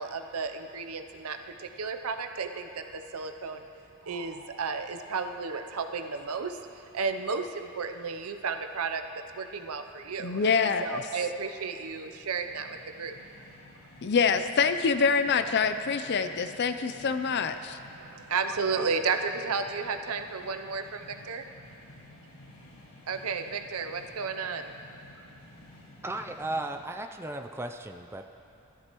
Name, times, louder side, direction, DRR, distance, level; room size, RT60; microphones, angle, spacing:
voice 1, 0.0-3.7 4.0-9.0 9.3-13.1 18.0-21.4 23.1-25.0, right 5 dB, 85° right, 7 dB, 0.7 m, -33 dB
sound 1, 9.1-26.9, left 1 dB, 90° left, 2.0 m, -54 dB
voice 2, 10.2-11.0 14.0-17.8, left 5 dB, 50° left, 9 dB, 0.5 m, -26 dB
voice 3, 26.0-28.2, right 2 dB, 10° right, 5 dB, 0.4 m, -35 dB
15.5 x 13.0 x 3.0 m, 3.0 s
head